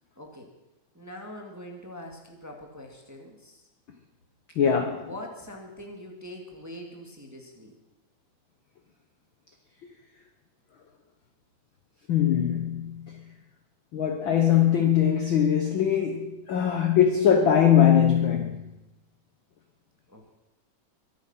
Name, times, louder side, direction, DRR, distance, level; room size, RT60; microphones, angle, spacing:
voice 1, 0.2-0.5 0.9-3.6 4.9-7.7 20.1-20.4, left 1 dB, 5° right, 1.7 m, -43 dB
voice 2, 4.6-5.1 12.1-13.0 13.9-18.6, left 9 dB, 60° left, 1.4 m, -21 dB
23.0 x 9.3 x 5.8 m
omnidirectional pair, 3.4 m